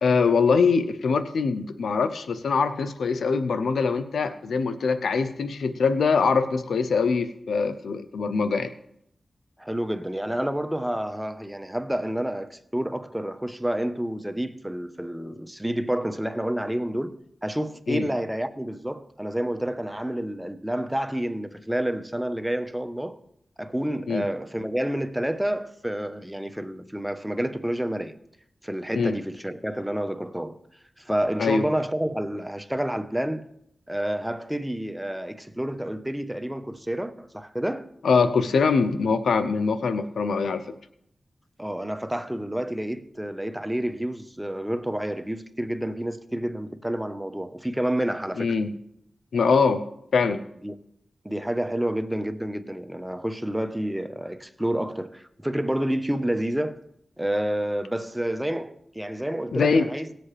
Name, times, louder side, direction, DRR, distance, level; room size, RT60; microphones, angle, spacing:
voice 1, 0.0-8.7 17.9-18.1 24.1-24.3 28.9-29.1 31.4-31.6 38.0-40.6 48.4-48.8 49.3-49.8 50.1-50.4 59.5-59.9, left 5 dB, 90° left, 0.6 m, -23 dB
voice 2, 9.6-23.2 23.6-28.1 28.6-30.6 31.0-33.5 33.9-37.9 41.6-48.6 50.6-50.8 51.2-56.8 57.2-60.1, right 1 dB, 10° right, 1.0 m, -29 dB
18.0 x 7.7 x 3.3 m
cardioid pair, 40°, 0 cm